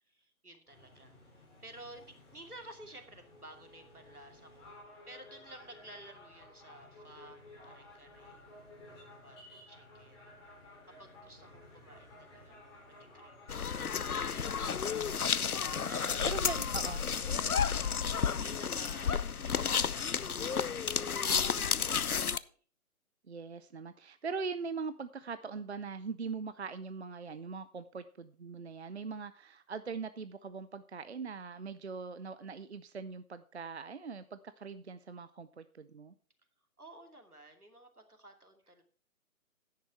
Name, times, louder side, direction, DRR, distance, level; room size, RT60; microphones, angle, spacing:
voice 1, 0.1-4.7 5.1-8.4 9.2-10.2 11.0-13.8 14.0-15.1 15.9-16.3 17.3-17.5 18.2-22.5 36.8-38.8, right 1 dB, 85° right, 5 dB, 2.7 m, -54 dB
sound 1, 0.7-17.4, left 1 dB, 20° left, 3.9 m, -55 dB
sound 2, 13.5-22.4, left 6 dB, 80° left, 0.7 m, -32 dB
voice 2, 16.2-17.0 23.3-36.1, right 5 dB, 50° right, 14 dB, 0.6 m, -41 dB
10.5 x 9.4 x 4.4 m, 0.43 s
figure-of-eight pair, 145°, 44 cm